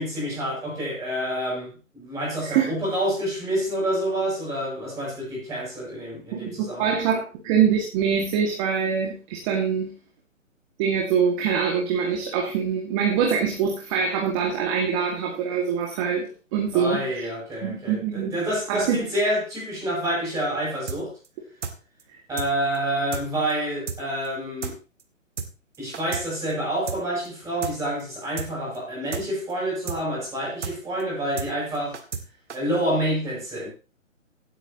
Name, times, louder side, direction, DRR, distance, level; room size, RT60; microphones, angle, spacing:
voice 1, 0.0-6.9 16.7-21.1 22.3-24.7 25.8-32.0 32.5-33.7, right 1 dB, 10° right, 7.9 m, -28 dB
voice 2, 6.3-9.9 10.8-17.3 17.6-18.3 18.7-19.0, right 7 dB, 25° right, 2.1 m, -24 dB
sound 1, 20.9-21.0 21.2-21.3 21.6-21.7 22.0-22.1 22.4-22.5 22.7-22.8 23.1-23.2 23.5-23.6 23.9-24.0 24.2-24.3 24.6-24.7 25.0-25.1 25.4-25.5 25.7-26.2 26.5-26.6 26.9-27.0 27.2-27.3 27.6-27.7 28.0-28.1 28.4-28.5 28.7-28.8 29.1-29.2 29.5-29.6 29.9-30.0 30.2-30.3 30.6-30.7 31.0-31.1 31.4-31.5 31.7-32.2 32.5-32.6, right 5 dB, 60° right, 1.9 m, -32 dB
17.0 x 9.1 x 3.0 m
figure-of-eight pair, 140°, 39 cm